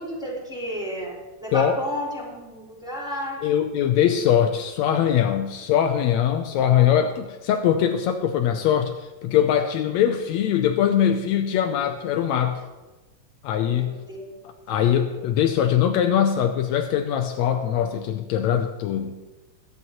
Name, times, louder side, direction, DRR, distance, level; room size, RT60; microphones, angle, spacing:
voice 1, 0.0-3.4 6.5-7.0 13.7-14.3, equal, ahead, -6 dB, 4.2 m, -33 dB
voice 2, 3.4-12.6 13.4-14.0 14.7-19.2, left 9 dB, 80° left, 6 dB, 1.9 m, -22 dB
22.0 x 9.5 x 3.0 m, 1.2 s
omnidirectional pair, 3.4 m